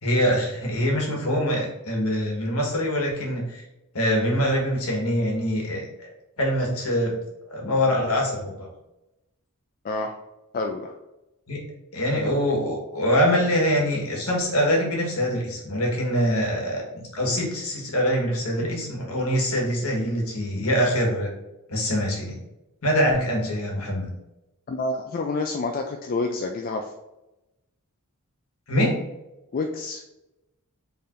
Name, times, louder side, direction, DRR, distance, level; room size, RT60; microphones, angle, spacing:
voice 1, 0.0-3.6 3.9-6.1 6.4-7.1 7.5-8.7 11.5-11.6 11.9-21.3 21.7-22.4 22.8-24.1 28.7-28.9, equal, 70° left, -2 dB, 1.4 m, -24 dB
voice 2, 10.5-10.9 18.6-18.7 24.7-26.9 29.5-30.0, left 3 dB, 40° left, 2 dB, 0.3 m, -28 dB
4.5 x 3.3 x 2.5 m, 0.95 s
head